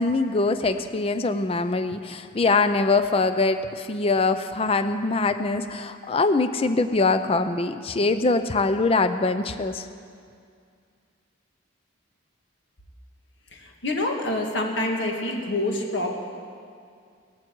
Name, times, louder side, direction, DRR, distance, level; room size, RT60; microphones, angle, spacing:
voice 1, 0.0-9.9, left 3 dB, 30° left, 10 dB, 0.4 m, -23 dB
voice 2, 13.5-16.1, left 1 dB, 60° left, 1 dB, 1.7 m, -27 dB
17.5 x 15.0 x 4.6 m, 2.3 s
head